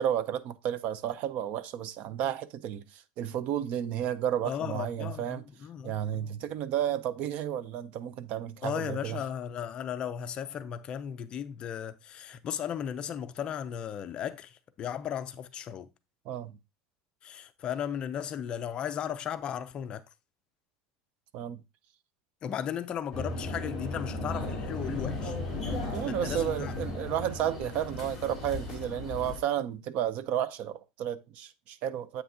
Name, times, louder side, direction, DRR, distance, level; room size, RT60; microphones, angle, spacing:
voice 1, 0.0-5.4 5.8-9.2 16.3-16.6 21.3-21.6 25.9-32.2, right 10 dB, 45° right, 0.5 m, -32 dB
voice 2, 4.4-6.3 8.6-15.9 17.2-20.0 22.4-25.4 26.0-26.7, left 9 dB, 30° left, 0.5 m, -36 dB
sound 1, 23.1-29.4, left 2 dB, ahead, 3.4 m, -36 dB
8.0 x 5.9 x 2.7 m
supercardioid pair, 155°, 3 cm